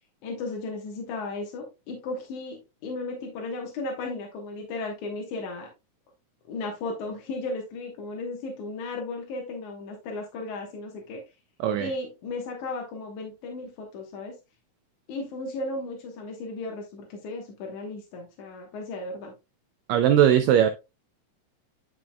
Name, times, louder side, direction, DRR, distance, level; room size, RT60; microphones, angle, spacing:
voice 1, 0.2-5.7 6.5-11.2 11.8-14.3 15.1-19.3, left 2 dB, 70° left, 2.6 m, -35 dB
voice 2, 11.6-11.9 19.9-20.7, right 10 dB, 85° right, 1.6 m, -19 dB
9.3 x 5.9 x 2.2 m
omnidirectional pair, 3.7 m